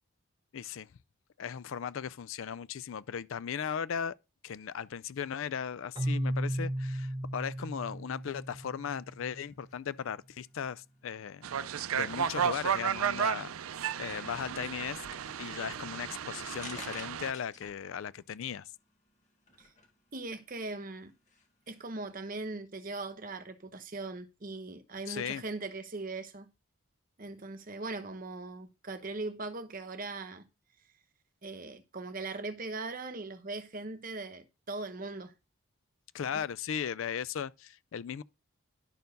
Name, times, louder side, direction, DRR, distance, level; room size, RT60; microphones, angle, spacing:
voice 1, 0.5-0.9 1.4-4.2 4.4-11.4 11.9-13.5 14.0-15.0 15.4-18.7 25.1-25.4 36.1-38.2, left 7 dB, 65° left, 0.4 m, -37 dB
Keyboard (musical), 5.9-9.7, right 1 dB, 20° right, 0.5 m, -35 dB
sound 1, 7.5-22.4, left 3 dB, 35° left, 1.6 m, -56 dB
sound 2, 11.4-17.3, right 8 dB, 75° right, 0.5 m, -33 dB
voice 2, 20.1-21.1 21.7-26.5 27.2-30.4 31.4-35.3 36.3-36.5, right 3 dB, 40° right, 0.9 m, -40 dB
11.0 x 4.5 x 5.2 m
head